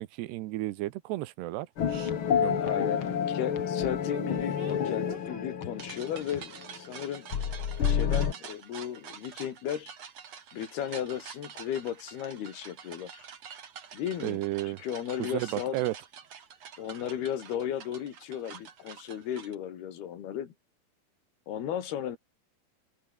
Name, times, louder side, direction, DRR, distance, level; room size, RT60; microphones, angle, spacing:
voice 1, 0.0-1.7 2.3-3.0 14.2-14.8 15.2-15.9, right 17 dB, 90° right, 3.1 m, -33 dB
sound 1, 1.8-6.9 7.3-8.3, left 8 dB, 50° left, 1.7 m, -29 dB
sound 2, 1.9-2.1 4.1-19.6, right 7 dB, 45° right, 3.0 m, -47 dB
voice 2, 2.6-7.3 7.8-9.9 10.5-13.3 13.9-15.9 16.8-20.5 21.5-22.2, left 10 dB, 75° left, 4.2 m, -35 dB
omnidirectional pair, 4.7 m